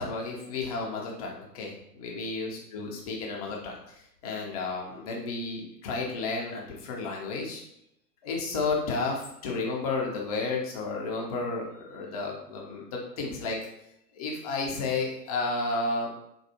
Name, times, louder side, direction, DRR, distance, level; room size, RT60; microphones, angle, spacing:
voice 1, 0.0-7.6 8.2-13.6 14.1-16.1, left 3 dB, 25° left, -1 dB, 0.4 m, -32 dB
4.3 x 2.3 x 2.7 m, 0.79 s
hypercardioid pair, 120°, 50 cm